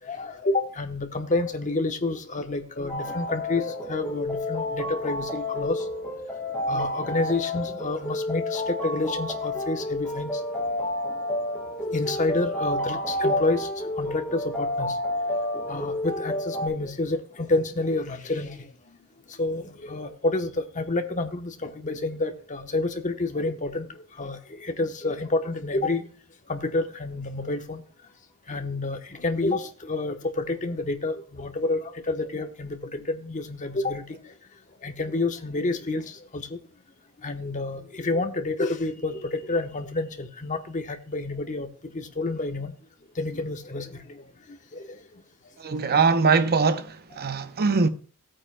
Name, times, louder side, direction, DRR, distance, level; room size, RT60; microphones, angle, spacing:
voice 1, 0.0-5.9 6.7-10.8 11.8-15.0 15.7-19.0 19.3-26.0 26.5-27.8 28.5-34.3 34.8-36.6 37.2-42.7 43.1-45.0, left 2 dB, 35° left, 1.0 m, -29 dB
sound 1, 2.9-16.7, left 1 dB, 5° left, 3.4 m, -30 dB
voice 2, 45.6-47.9, right 4 dB, 45° right, 0.7 m, -22 dB
16.0 x 8.8 x 2.2 m
head